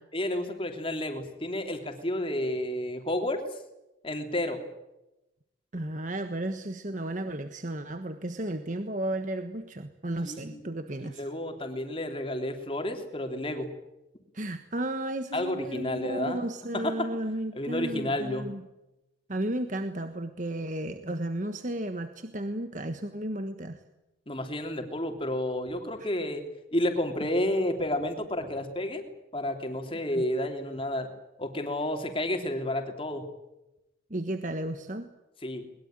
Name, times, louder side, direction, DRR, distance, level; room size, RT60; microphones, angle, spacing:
voice 1, 0.1-3.4 4.0-4.6 10.2-10.6 11.0-13.7 15.3-16.4 16.7-17.1 17.5-18.5 24.3-26.4 26.7-29.0 29.3-31.1 31.4-33.3 35.4-35.7, left 1 dB, 30° left, 5 dB, 3.2 m, -31 dB
voice 2, 5.7-11.3 14.3-18.6 19.3-23.8 29.9-30.2 34.1-35.1, right 1 dB, 40° right, 8 dB, 1.4 m, -33 dB
22.5 x 21.5 x 9.0 m, 0.95 s
head